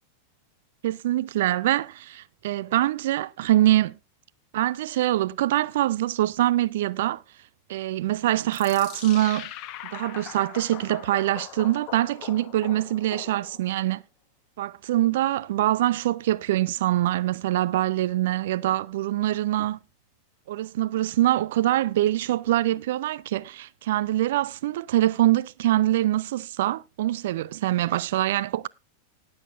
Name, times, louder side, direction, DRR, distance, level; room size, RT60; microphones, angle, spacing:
voice 1, 0.8-4.0 4.5-7.2 7.7-9.5 9.8-14.0 14.6-19.8 20.5-28.7, right 14 dB, 55° right, 0.5 m, -24 dB
sound 1, 8.5-13.8, left 12 dB, 40° left, 1.0 m, -41 dB
19.0 x 7.9 x 2.5 m
figure-of-eight pair, 90°, 0 cm